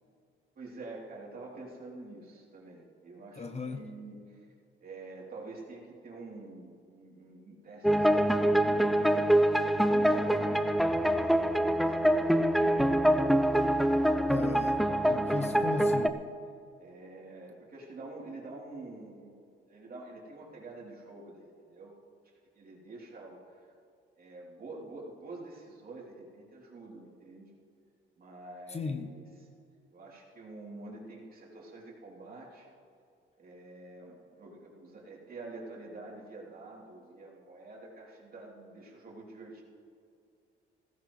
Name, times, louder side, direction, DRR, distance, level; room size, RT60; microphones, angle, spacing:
voice 1, 0.5-4.4 4.8-9.0 9.7-12.5 15.2-15.6 16.8-22.0 22.5-23.6 24.2-27.5 28.2-29.2 29.9-32.7 33.4-39.6, right 2 dB, 45° right, -3 dB, 3.3 m, -47 dB
voice 2, 3.4-3.9 14.3-16.2 28.7-29.2, left 4 dB, 35° left, 7 dB, 0.9 m, -37 dB
sound 1, 7.8-16.1, right 1 dB, ahead, 0.6 m, -25 dB
16.0 x 14.5 x 3.2 m, 2.4 s
cardioid pair, 90°, 20 cm